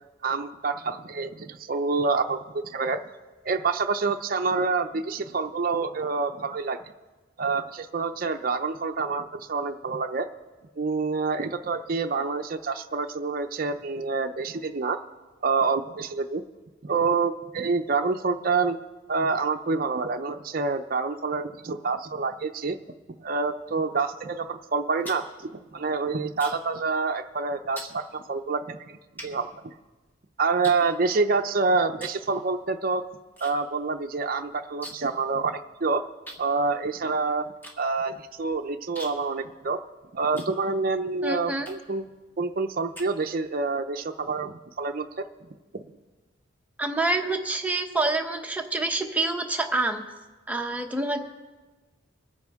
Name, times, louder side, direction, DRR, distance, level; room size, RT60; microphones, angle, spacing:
voice 1, 0.2-3.0 3.4-6.8 7.4-10.3 10.8-15.0 15.4-16.4 16.8-18.8 19.1-22.8 23.2-29.7 30.4-33.0 33.4-36.0 36.4-37.5 37.8-39.8 40.1-42.0 42.4-45.3 45.7-45.8, right 4 dB, 45° right, 5 dB, 0.5 m, -27 dB
sound 1, 24.8-26.8 27.1-27.4 27.8-28.0 28.6-28.7 29.2-30.1 30.6-31.5 31.9-32.3 32.6-33.5 33.8-33.9 34.2-35.2 35.5-35.6 36.3-41.0 41.6-42.0 42.5-43.6, equal, 10° left, 1.5 m, -44 dB
voice 2, 41.2-41.7 46.8-50.0 50.5-51.2, right 2 dB, 5° right, 3 dB, 0.8 m, -27 dB
23.0 x 9.5 x 3.6 m, 1.2 s
head